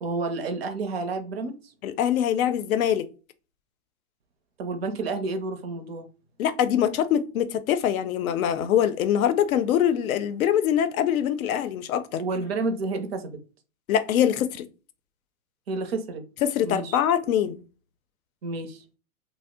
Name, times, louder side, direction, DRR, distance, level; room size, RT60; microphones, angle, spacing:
voice 1, 0.0-1.7 4.6-6.1 12.2-13.3 15.7-16.2 16.6-17.0 18.4-18.8, right 3 dB, 45° right, 0.5 m, -30 dB
voice 2, 1.8-3.1 6.4-12.2 13.9-14.7 16.4-17.6, left 10 dB, 75° left, 0.5 m, -23 dB
2.6 x 2.0 x 3.5 m
hypercardioid pair, 165°, 42 cm